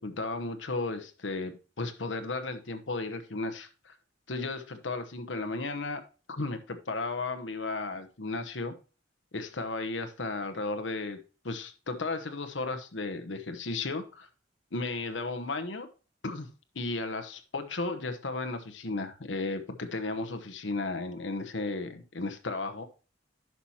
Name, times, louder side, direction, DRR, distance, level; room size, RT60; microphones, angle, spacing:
voice 1, 0.0-3.9 4.3-6.0 6.3-8.7 9.3-11.2 11.4-14.3 14.7-15.9 16.2-16.5 16.7-22.9, left 3 dB, 70° left, 8 dB, 1.0 m, -34 dB
11.0 x 5.6 x 2.9 m, 0.35 s
head